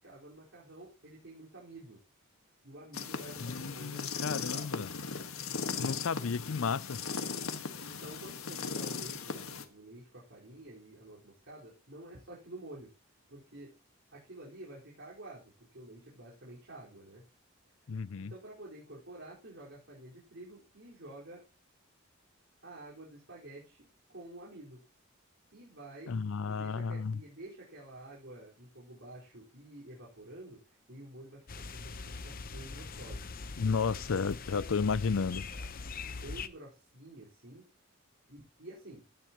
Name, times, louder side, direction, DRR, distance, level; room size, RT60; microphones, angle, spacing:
voice 1, 0.0-2.0 2.6-4.8 7.8-12.9 13.3-13.8 14.1-17.2 18.2-21.4 22.6-24.8 25.5-26.2 26.5-33.6 34.1-34.2 34.5-34.8 35.5-35.7 36.1-37.6 38.3-39.1, right 1 dB, 65° right, 4.9 m, -50 dB
sound 1, 2.9-9.6, left 5 dB, 90° left, 1.7 m, -38 dB
voice 2, 3.4-4.9 5.8-7.0 17.9-18.3 26.1-27.2 33.6-35.5, left 5 dB, 70° left, 0.5 m, -32 dB
sound 2, 31.5-36.5, left 4 dB, 45° left, 0.8 m, -42 dB
16.5 x 11.0 x 3.1 m
head